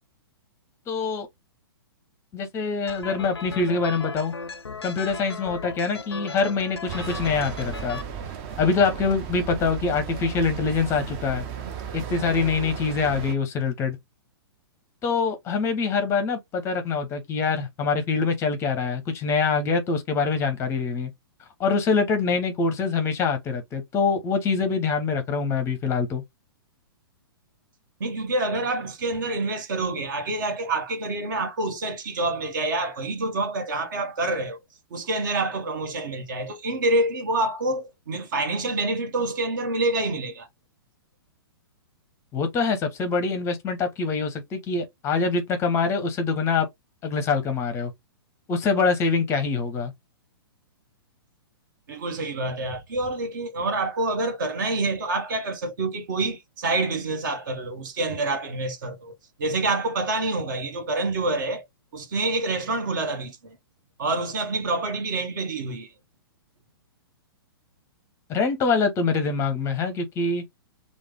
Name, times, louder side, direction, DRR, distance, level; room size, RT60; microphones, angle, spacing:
voice 1, 0.9-1.3 2.3-4.3 4.8-8.0 8.6-11.4 11.9-14.0 15.0-21.1 21.6-26.2 42.3-46.7 47.0-47.9 48.5-49.9 68.3-70.4, left 4 dB, 20° left, 0.6 m, -24 dB
sound 1, 2.9-8.0, left 4 dB, 80° left, 0.4 m, -37 dB
sound 2, 6.9-13.3, right 8 dB, 35° right, 0.6 m, -35 dB
voice 2, 28.0-34.6 34.9-40.5 51.9-61.7 61.9-63.6 64.0-65.9, right 2 dB, 50° right, 1.0 m, -27 dB
3.2 x 2.0 x 3.4 m
figure-of-eight pair, 115°, 13 cm